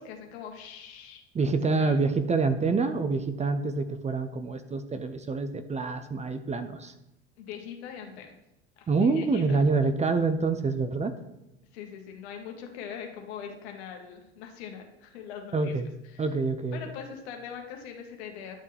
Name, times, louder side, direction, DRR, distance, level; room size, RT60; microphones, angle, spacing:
voice 1, 0.0-1.4 1.8-2.0 7.4-8.3 8.8-9.6 11.7-15.7 16.1-16.2 16.7-18.6, left 7 dB, 70° left, 3 dB, 1.7 m, -42 dB
voice 2, 1.3-6.9 8.9-11.1 15.5-15.9 16.2-16.8, right 4 dB, 20° right, 10 dB, 0.6 m, -26 dB
11.0 x 6.6 x 3.4 m, 0.91 s
hypercardioid pair, 80°, 34 cm